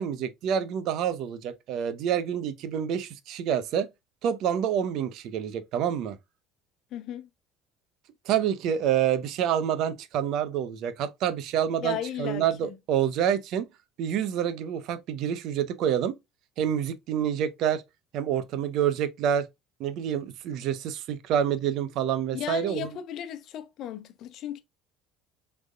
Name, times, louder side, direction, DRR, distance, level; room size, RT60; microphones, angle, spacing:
voice 1, 0.0-3.9 4.2-6.2 8.3-13.7 14.0-16.1 16.6-17.8 18.1-19.5 19.8-22.9, right 9 dB, 65° right, 0.8 m, -27 dB
voice 2, 6.9-7.3 11.8-12.7 22.3-24.6, left 10 dB, 60° left, 0.8 m, -35 dB
6.4 x 3.4 x 2.3 m
hypercardioid pair, 70°, 0 cm